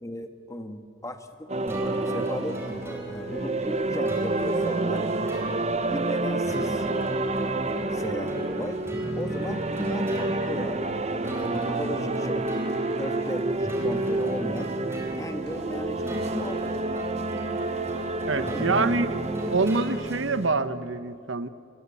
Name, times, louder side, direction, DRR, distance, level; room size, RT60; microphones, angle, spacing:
voice 1, 0.0-5.1 5.9-6.9 7.9-8.8 9.1-10.9 11.3-12.5 13.0-14.7 15.2-16.9 18.3-19.0, left 1 dB, 15° left, 7 dB, 1.4 m, -36 dB
sound 1, 1.5-20.5, right 2 dB, 30° right, 0.8 m, -29 dB
sound 2, 1.7-20.9, right 1 dB, 15° right, 4.0 m, -37 dB
sound 3, 2.1-20.2, left 1 dB, 50° left, 3.3 m, -48 dB
voice 2, 18.3-19.2 19.5-21.5, right 3 dB, 65° right, 13 dB, 1.0 m, -26 dB
29.0 x 22.0 x 8.5 m, 2.4 s
head